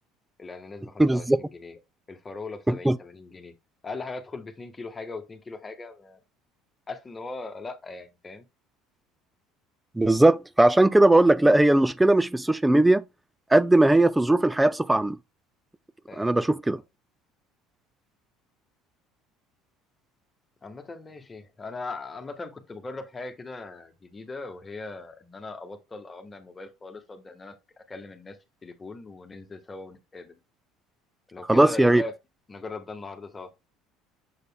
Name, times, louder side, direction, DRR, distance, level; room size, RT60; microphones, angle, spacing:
voice 1, 0.4-1.8 2.1-3.5 3.8-6.2 6.9-8.4 16.1-16.5 16.7-16.8 20.6-30.4 31.3-32.1 32.5-33.5, left 3 dB, 20° left, 1.3 m, -39 dB
voice 2, 1.0-1.4 2.7-3.0 10.0-13.0 13.5-15.2 16.2-16.8 31.5-32.0, right 1 dB, 10° right, 0.4 m, -19 dB
6.7 x 6.6 x 2.2 m
supercardioid pair, 110°, 0 cm